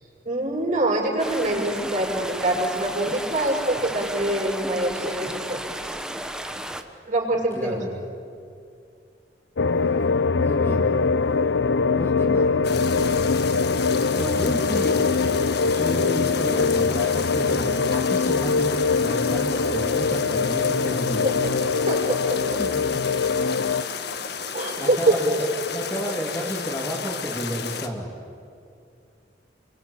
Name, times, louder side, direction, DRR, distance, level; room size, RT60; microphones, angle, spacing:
voice 1, 0.2-5.7 7.1-7.8 21.2-21.3 21.9-22.6 24.5-25.2, right 2 dB, 45° right, 0 dB, 6.1 m, -24 dB
sound 1, 1.2-6.8, right 1 dB, 5° right, 1.3 m, -33 dB
voice 2, 7.5-7.9 10.4-10.9 11.9-12.5 12.9-13.0 14.2-15.1 15.7-21.6 22.6-22.8 24.8-28.1, equal, 10° left, -5 dB, 2.8 m, -31 dB
sound 2, 9.6-23.8, left 4 dB, 85° left, 0.6 m, -23 dB
sound 3, 12.6-27.9, left 6 dB, 65° left, 1.6 m, -33 dB
29.0 x 23.5 x 8.8 m, 2.5 s
head